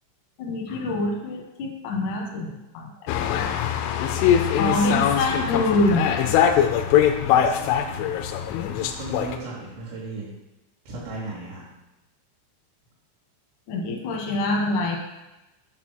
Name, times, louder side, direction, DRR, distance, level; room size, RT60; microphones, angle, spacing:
voice 1, 0.4-2.9 4.6-6.1 13.7-15.0, left 2 dB, 70° left, 0 dB, 1.9 m, -25 dB
sound 1, 3.1-9.4, left 9 dB, 85° left, 3.1 m, -22 dB
voice 2, 7.1-10.4 10.9-11.6, right 3 dB, 75° right, -7 dB, 4.1 m, -37 dB
8.5 x 3.4 x 6.2 m, 1.0 s
omnidirectional pair, 5.5 m